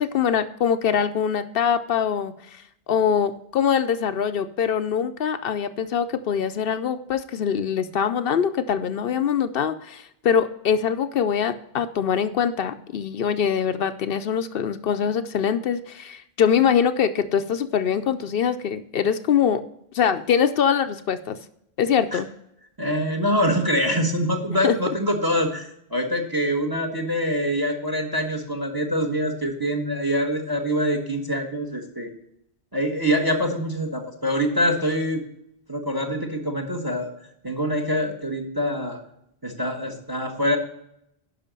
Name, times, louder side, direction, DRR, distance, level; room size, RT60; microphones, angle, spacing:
voice 1, 0.0-2.6 2.9-19.6 19.9-21.4 21.8-22.3 24.6-24.7, left 7 dB, 65° left, 11 dB, 0.7 m, -23 dB
voice 2, 22.8-32.1 32.7-35.2 35.7-37.1 37.4-39.0 39.4-40.6, equal, 20° right, 4 dB, 1.4 m, -25 dB
11.0 x 5.6 x 5.2 m, 0.76 s
omnidirectional pair, 1.1 m